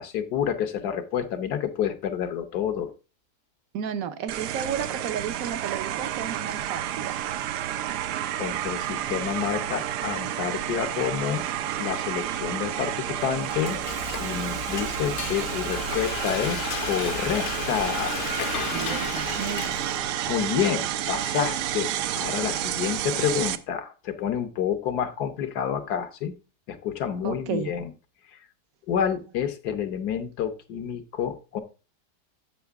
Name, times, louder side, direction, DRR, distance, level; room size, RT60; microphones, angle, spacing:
voice 1, 0.0-2.9 8.4-11.4 11.8-13.8 14.2-18.2 20.3-26.3 26.7-27.9 28.9-31.6, left 8 dB, 75° left, 8 dB, 1.4 m, -29 dB
voice 2, 3.7-7.2 18.7-19.8 27.2-27.7, right 8 dB, 65° right, 11 dB, 1.1 m, -33 dB
sound 1, 4.3-23.6, right 11 dB, 85° right, 1.2 m, -30 dB
Frying (food), 13.2-20.2, left 8 dB, 55° left, 0.8 m, -34 dB
7.2 x 7.0 x 3.4 m, 0.33 s
omnidirectional pair, 1.7 m